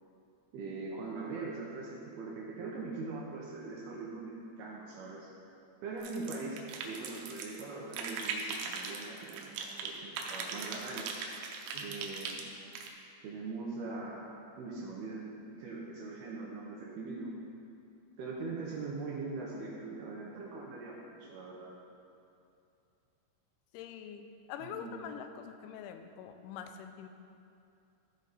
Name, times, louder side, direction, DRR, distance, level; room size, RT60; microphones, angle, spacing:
voice 1, 0.5-5.3 5.8-11.1 11.7-12.4 13.2-17.3 18.2-21.7 24.6-25.0, right 3 dB, 75° right, -3 dB, 2.5 m, -41 dB
sound 1, 6.0-7.6 7.9-9.9 10.2-12.9, right 5 dB, 90° right, 3.2 m, -39 dB
voice 2, 23.7-24.2 24.5-27.1, left 8 dB, 90° left, 7 dB, 3.0 m, -44 dB
14.5 x 5.0 x 4.1 m, 2.6 s
omnidirectional pair, 5.3 m